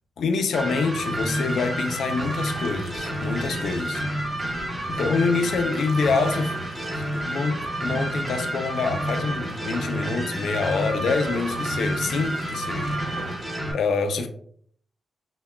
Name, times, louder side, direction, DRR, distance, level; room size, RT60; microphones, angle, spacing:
voice 1, 0.2-4.0 4.9-6.6 6.9-13.0 13.7-14.3, left 4 dB, 80° left, 0.4 m, -26 dB
sound 1, 0.5-13.7, right 1 dB, 20° right, 0.8 m, -29 dB
sound 2, 1.0-13.6, right 3 dB, 90° right, 0.6 m, -46 dB
5.7 x 2.2 x 2.2 m
wide cardioid pair, 180°, 0 cm